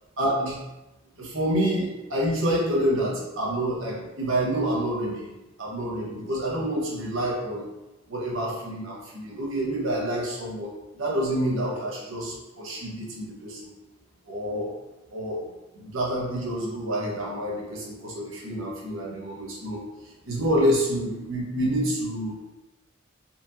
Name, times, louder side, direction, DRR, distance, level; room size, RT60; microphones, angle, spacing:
voice 1, 0.2-0.6 1.2-5.3 5.6-7.6 8.1-13.7 14.3-14.7 15.1-15.5 15.7-22.3, right 1 dB, 70° right, -3 dB, 1.0 m, -28 dB
4.2 x 2.8 x 2.6 m, 1.0 s
head